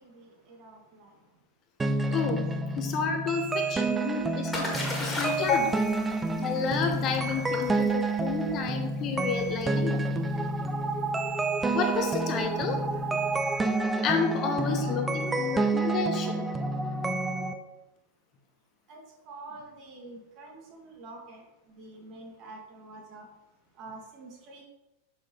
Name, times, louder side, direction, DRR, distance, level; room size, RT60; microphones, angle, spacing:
voice 1, 0.0-1.1 3.5-3.7 6.0-6.1 7.2-7.8 9.4-9.5 12.9-13.0 14.7-15.4 18.9-19.0 19.3-21.4 21.7-23.3 23.8-24.6, right 3 dB, 40° right, 0 dB, 1.6 m, -47 dB
sound 1, 1.8-17.5, right 2 dB, 10° right, 0.5 m, -29 dB
voice 2, 2.1-2.4 2.8-4.7 5.0-5.9 6.4-10.0 11.7-12.8 14.0-16.5, left 5 dB, 35° left, 5 dB, 0.7 m, -30 dB
Splash splatter, 3.8-13.7, left 1 dB, 10° left, 1.8 m, -39 dB
6.3 x 5.5 x 2.9 m, 0.96 s
figure-of-eight pair, 90°, 0 cm